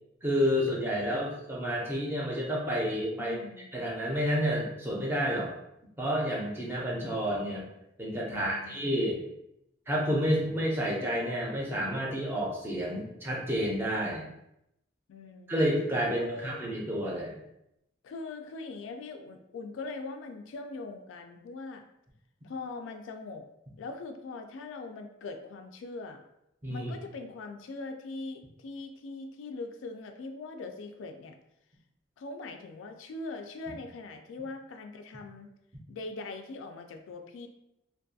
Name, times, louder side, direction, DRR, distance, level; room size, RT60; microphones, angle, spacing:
voice 1, 0.2-3.4 3.7-5.5 6.0-7.7 8.0-9.2 9.9-14.3 15.5-17.4 26.6-26.9, equal, 10° right, -3 dB, 0.5 m, -30 dB
voice 2, 3.2-3.7 8.3-8.8 15.1-15.5 16.1-16.6 18.0-21.8 22.4-23.4 23.8-26.2 26.7-31.3 32.2-35.5 35.9-37.5, left 3 dB, 85° left, 6 dB, 0.3 m, -41 dB
2.5 x 2.3 x 2.6 m, 0.82 s
head